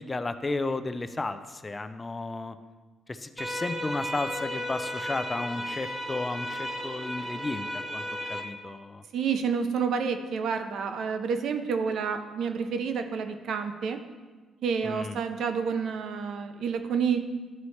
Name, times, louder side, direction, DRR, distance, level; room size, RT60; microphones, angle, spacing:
voice 1, 0.0-2.6 3.1-7.6 7.9-8.0 8.3-9.0 14.8-15.2, left 3 dB, 25° left, 10 dB, 0.4 m, -33 dB
sound 1, 3.4-8.4, equal, 15° right, 1.1 m, -34 dB
voice 2, 9.1-14.0 14.6-17.2, right 6 dB, 70° right, 8 dB, 0.5 m, -29 dB
11.0 x 4.1 x 3.2 m, 1.3 s
cardioid pair, 90°, 0 cm